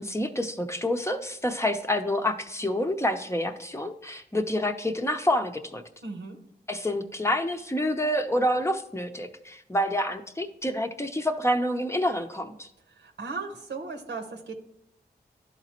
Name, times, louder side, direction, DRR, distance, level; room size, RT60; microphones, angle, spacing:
voice 1, 0.0-5.8 6.7-12.7, left 1 dB, 15° left, 6 dB, 0.7 m, -28 dB
voice 2, 6.0-6.4 13.0-14.6, right 4 dB, 85° right, 3 dB, 1.0 m, -36 dB
11.0 x 3.9 x 2.9 m, 0.77 s
cardioid pair, 45°, 17 cm